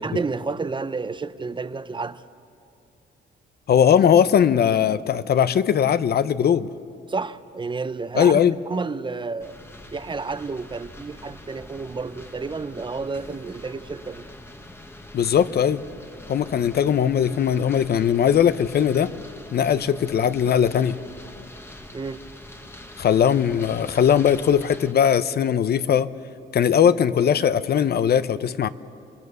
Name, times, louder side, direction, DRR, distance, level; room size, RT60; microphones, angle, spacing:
voice 1, 0.0-2.2 7.1-9.6 9.9-14.3 21.9-22.2, right 4 dB, 25° right, 0.6 m, -30 dB
voice 2, 3.7-6.7 8.2-8.5 15.1-15.8 16.3-19.1 19.5-21.0 23.0-26.1 26.5-28.7, left 8 dB, 55° left, 0.7 m, -19 dB
sound 1, 9.4-24.9, left 1 dB, 10° left, 1.3 m, -43 dB
27.0 x 20.5 x 6.8 m
cardioid pair, 90°, 20 cm